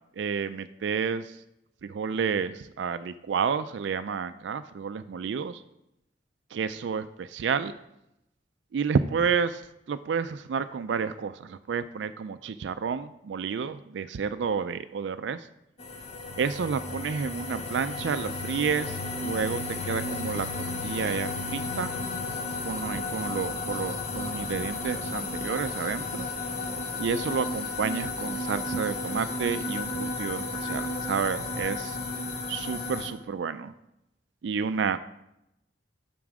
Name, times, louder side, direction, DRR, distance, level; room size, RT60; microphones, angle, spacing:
voice 1, 0.2-1.4 1.8-5.6 6.5-7.7 8.7-9.6 9.9-15.5 16.4-20.5 20.8-21.9 22.6-26.3 27.0-32.0 32.5-33.7 34.4-35.0, right 6 dB, 70° right, 12 dB, 0.3 m, -30 dB
sound 1, 15.8-33.1, left 3 dB, 35° left, 0.9 m, -33 dB
7.3 x 6.0 x 4.8 m, 0.86 s
head